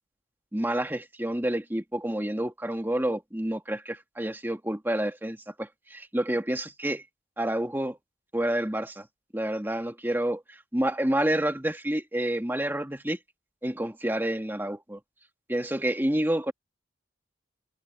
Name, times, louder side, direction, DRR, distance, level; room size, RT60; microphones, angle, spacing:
voice 1, 0.5-7.0 7.4-8.0 8.3-9.1 9.3-13.2 13.6-15.0 15.5-16.5, right 1 dB, 10° right, 1.4 m, -29 dB
head